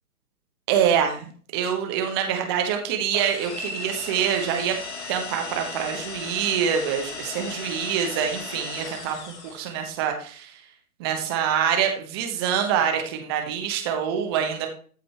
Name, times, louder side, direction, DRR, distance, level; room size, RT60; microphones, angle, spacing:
voice 1, 0.7-4.8 5.1-10.6 11.0-14.7, right 8 dB, 15° right, 4 dB, 1.0 m, -25 dB
sound 1, 3.1-9.8, left 3 dB, 50° left, 2.8 m, -36 dB
13.5 x 5.1 x 3.0 m, 0.43 s
figure-of-eight pair, 140°, 45 cm